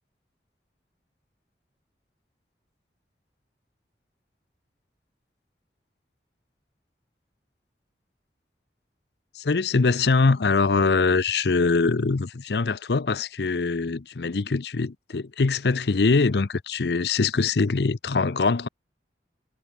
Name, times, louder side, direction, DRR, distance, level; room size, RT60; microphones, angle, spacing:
voice 1, 9.3-18.7, left 4 dB, 70° left, 0.6 m, -23 dB
head